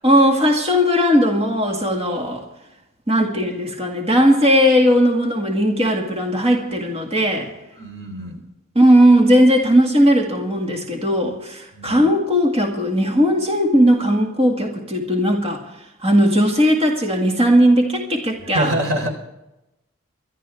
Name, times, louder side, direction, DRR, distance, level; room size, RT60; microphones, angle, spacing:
voice 1, 0.0-2.4 3.1-7.5 8.8-15.6 16.0-18.7, equal, 30° right, 0 dB, 2.0 m, -17 dB
voice 2, 7.8-8.4 11.7-12.1 18.5-19.1, right 1 dB, 85° right, 2 dB, 3.9 m, -25 dB
24.5 x 12.0 x 3.4 m, 0.92 s
head